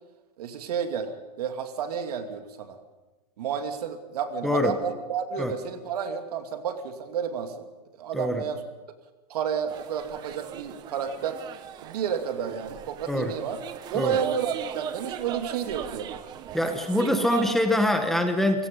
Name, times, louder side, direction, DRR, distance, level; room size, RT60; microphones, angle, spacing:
voice 1, 0.4-2.8 3.4-7.7 8.0-8.6 9.3-11.4 11.8-13.6 13.9-16.2, right 7 dB, 75° right, 6 dB, 2.5 m, -31 dB
sound 1, 9.7-17.5, right 10 dB, 20° right, 0.7 m, -38 dB
voice 2, 16.5-18.7, left 1 dB, ahead, 5 dB, 1.1 m, -24 dB
29.0 x 17.5 x 5.4 m, 1.2 s
supercardioid pair, 170°, 20 cm